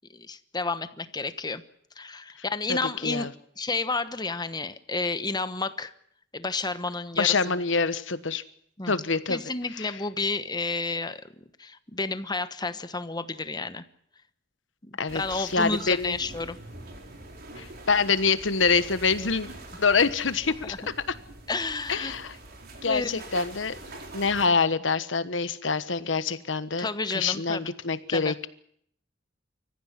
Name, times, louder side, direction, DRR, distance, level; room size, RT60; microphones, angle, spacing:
voice 1, 0.1-1.6 2.0-3.3 3.6-5.9 6.3-7.3 8.8-9.0 9.3-13.8 14.8-16.6 20.6-20.8 21.5-22.1 22.8-23.3 26.8-27.6 28.1-28.3, left 3 dB, 20° left, 12 dB, 1.1 m, -31 dB
voice 2, 7.2-8.4 8.9-9.4 15.0-16.2 17.6-19.5 19.8-21.1 21.9-22.4 22.8-23.7 24.1-26.9 27.1-28.5, left 5 dB, 80° left, 13 dB, 1.3 m, -25 dB
sound 1, 15.1-24.5, right 2 dB, 55° right, 4.4 m, -44 dB
24.5 x 14.5 x 9.9 m, 0.68 s
head